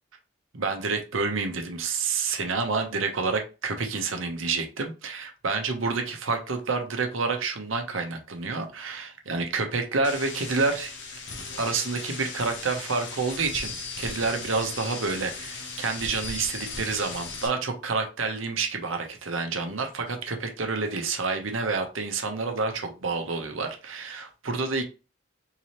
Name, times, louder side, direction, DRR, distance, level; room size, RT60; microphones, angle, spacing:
voice 1, 0.5-10.9 11.6-24.8, right 4 dB, 85° right, 4 dB, 0.9 m, -29 dB
sound 1, 10.0-17.5, left 4 dB, 60° left, 1.0 m, -37 dB
3.8 x 2.9 x 3.1 m, 0.31 s
head